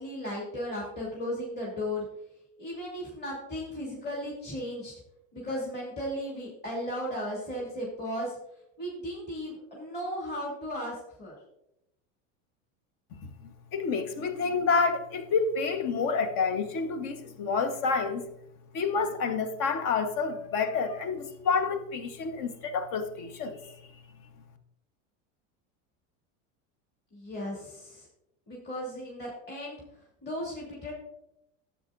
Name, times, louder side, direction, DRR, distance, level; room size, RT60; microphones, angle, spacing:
voice 1, 0.0-2.0 2.6-5.0 5.3-8.4 8.8-11.4 27.1-28.1 28.5-29.8 30.2-30.9, equal, 25° left, 2.8 m, -35 dB
voice 2, 13.2-18.2 18.7-23.7, left 5 dB, 55° left, 1.3 m, -29 dB
12.0 x 8.3 x 2.6 m
supercardioid pair, 120°, 39 cm